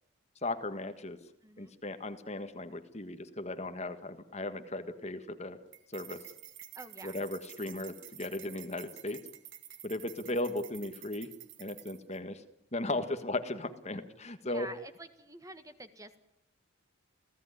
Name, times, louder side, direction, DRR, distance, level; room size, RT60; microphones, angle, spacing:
voice 1, 0.4-1.2 1.6-5.6 5.9-6.2 7.0-9.2 9.8-11.3 11.6-12.4 12.7-14.7, left 2 dB, 30° left, 9 dB, 1.6 m, -36 dB
voice 2, 1.4-1.7 6.7-7.2 13.9-14.0 14.4-16.2, right 1 dB, 15° right, 9 dB, 1.6 m, -48 dB
sound 1, 5.7-12.2, right 11 dB, 65° right, 2.2 m, -50 dB
29.5 x 16.5 x 9.8 m, 0.81 s
head